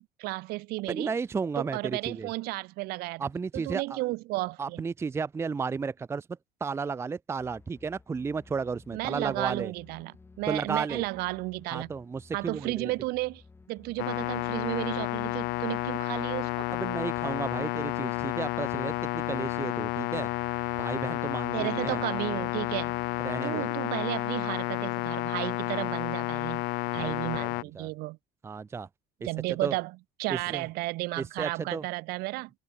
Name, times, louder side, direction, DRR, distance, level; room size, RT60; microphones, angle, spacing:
voice 1, 0.0-1.1 1.6-3.3 3.5-4.8 8.9-11.9 12.3-13.4 13.7-16.7 21.5-23.0 23.4-26.7 26.9-28.2 29.2-32.5, right 22 dB, 75° right, 6.0 m, -33 dB
voice 2, 0.9-2.3 3.2-4.0 4.6-6.3 6.6-9.7 10.5-11.0 11.7-12.9 16.7-20.3 20.8-22.0 23.2-23.7 26.9-27.1 27.4-27.9 28.4-28.9 29.6-29.7 30.3-30.6 31.2-31.8, right 5 dB, 15° right, 0.7 m, -33 dB
sound 1, 7.4-23.4, left 3 dB, 15° left, 6.0 m, -55 dB
sound 2, 14.0-27.6, left 25 dB, 80° left, 1.1 m, -31 dB
cardioid pair, 150°, 16 cm